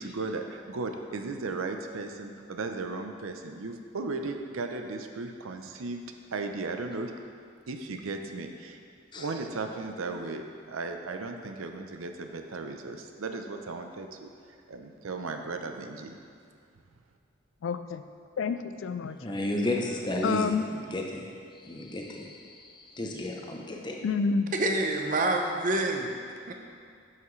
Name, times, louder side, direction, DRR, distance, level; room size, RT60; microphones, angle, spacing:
voice 1, 0.0-6.0 6.3-7.1 7.7-8.8 9.2-14.3 14.7-16.2, right 3 dB, 90° right, 5 dB, 0.6 m, -36 dB
voice 2, 17.6-18.0 18.4-19.2 20.2-20.7 24.0-24.5, left 5 dB, 70° left, 10 dB, 0.3 m, -28 dB
voice 3, 19.2-20.6 20.9-21.2 21.6-24.0, left 1 dB, 20° left, 0 dB, 0.7 m, -32 dB
voice 4, 24.5-26.1 26.5-26.6, right 2 dB, 40° right, 3 dB, 0.6 m, -27 dB
11.0 x 5.7 x 3.2 m, 2.2 s
head